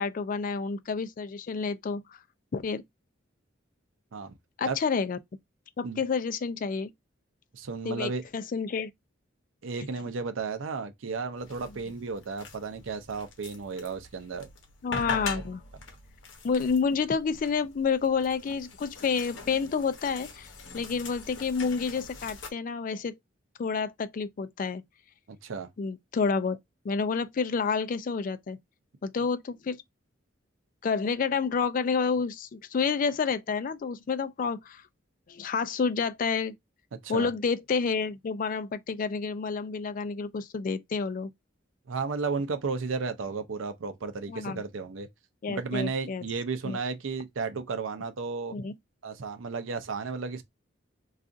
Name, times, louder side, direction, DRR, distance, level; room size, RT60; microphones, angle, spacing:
voice 1, 0.0-2.0 2.5-2.8 4.6-5.2 5.8-6.9 7.8-8.9 14.8-15.6 16.4-20.5 20.7-23.2 23.6-24.8 25.8-26.6 26.8-28.6 29.0-29.8 30.8-34.8 35.3-36.5 37.1-41.3 44.3-44.6 45.4-46.2 46.6-46.8 48.5-48.7, left 5 dB, 45° left, 0.3 m, -29 dB
voice 2, 7.5-8.2 9.6-14.5 15.3-15.4 25.3-25.7 37.0-37.3 41.9-45.1 45.5-48.5 49.0-50.4, right 4 dB, 80° right, 0.5 m, -33 dB
sound 1, 11.4-22.5, left 4 dB, 65° left, 0.8 m, -42 dB
2.5 x 2.4 x 3.7 m
head